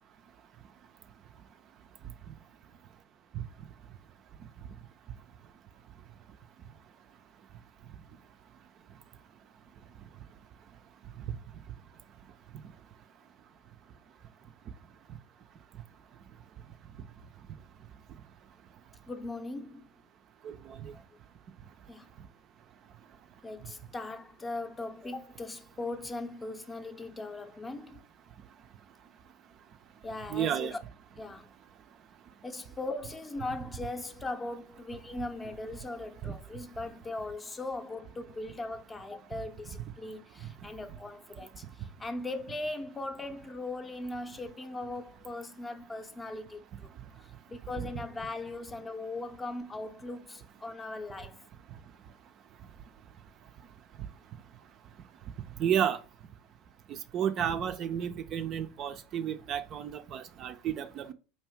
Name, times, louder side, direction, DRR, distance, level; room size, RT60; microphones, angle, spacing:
voice 1, 19.1-19.9 20.9-21.0 21.9-22.1 23.4-28.0 30.0-30.8 31.2-31.5 32.4-46.9 47.2-51.4, left 2 dB, 20° left, 0.6 m, -39 dB
voice 2, 20.4-20.8 30.3-30.7 36.2-36.3 47.8-47.9 55.6-56.0 56.9-61.1, right 9 dB, 40° right, 0.4 m, -32 dB
4.5 x 2.7 x 3.1 m
figure-of-eight pair, 75°, 0 cm